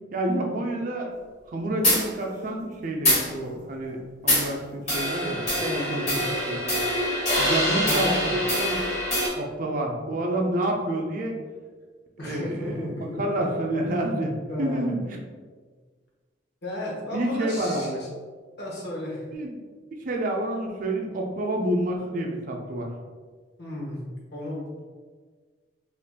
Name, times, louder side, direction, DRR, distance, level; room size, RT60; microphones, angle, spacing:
voice 1, 0.1-1.1 1.5-5.4 5.9-6.8 7.4-8.9 9.3-11.4 12.2-15.2 17.1-18.0 19.3-19.6 20.0-22.9, right 1 dB, 45° right, 1 dB, 0.4 m, -29 dB
sound 1, 1.8-2.1 3.0-3.3 4.3-4.5 4.9-9.3, equal, 35° left, 1.4 m, -24 dB
voice 2, 5.6-6.1 7.8-8.3 12.2-13.2 14.5-14.9 16.6-18.1 18.6-19.2 23.6-24.0 24.3-24.8, left 1 dB, 60° left, -4 dB, 0.9 m, -33 dB
3.5 x 2.5 x 2.2 m, 1.5 s
head